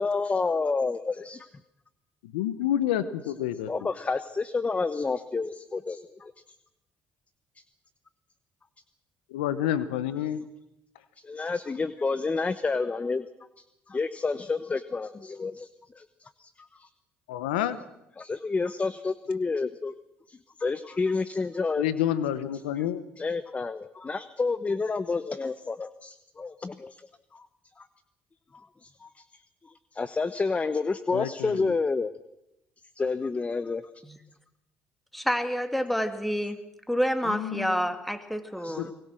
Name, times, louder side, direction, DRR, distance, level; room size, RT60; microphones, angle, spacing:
voice 1, 0.0-1.5 3.7-6.3 11.2-13.3 13.6-15.7 15.9-16.9 18.2-19.9 20.3-21.8 23.2-27.5 27.8-27.9 28.5-32.1 33.0-33.8 38.5-38.9, left 4 dB, 30° left, 14 dB, 1.0 m, -30 dB
voice 2, 2.2-3.9 9.3-10.4 17.3-17.8 21.8-23.0 31.1-31.7 37.2-37.8 38.8-38.9, left 11 dB, 90° left, 14 dB, 0.9 m, -29 dB
voice 3, 35.1-36.6 36.9-38.9, equal, ahead, 8 dB, 2.6 m, -28 dB
23.5 x 20.0 x 6.3 m, 0.87 s
hypercardioid pair, 60°, 5 cm